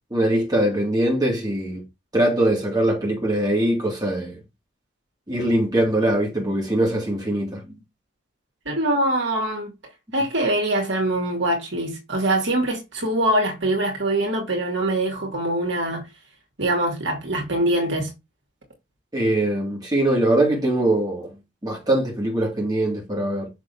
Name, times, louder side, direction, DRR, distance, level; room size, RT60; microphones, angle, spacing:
voice 1, 0.1-1.8 2.1-4.4 5.3-7.8 19.1-21.3 21.6-23.5, right 1 dB, 20° right, 2.4 m, -22 dB
voice 2, 8.7-9.7 10.1-16.1 16.6-18.1, right 1 dB, 60° right, 2.4 m, -23 dB
6.4 x 6.3 x 2.8 m
head